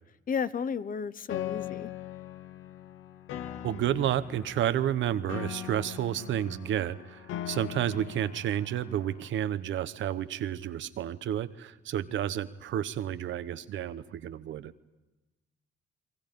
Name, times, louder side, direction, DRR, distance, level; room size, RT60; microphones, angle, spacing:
voice 1, 0.3-1.9, left 6 dB, 45° left, 16 dB, 0.8 m, -33 dB
Piano, 1.3-9.3, left 11 dB, 85° left, 0.9 m, -40 dB
voice 2, 3.6-14.7, right 11 dB, 70° right, 13 dB, 0.9 m, -31 dB
30.0 x 22.5 x 5.3 m, 1.1 s
cardioid pair, 90°, 20 cm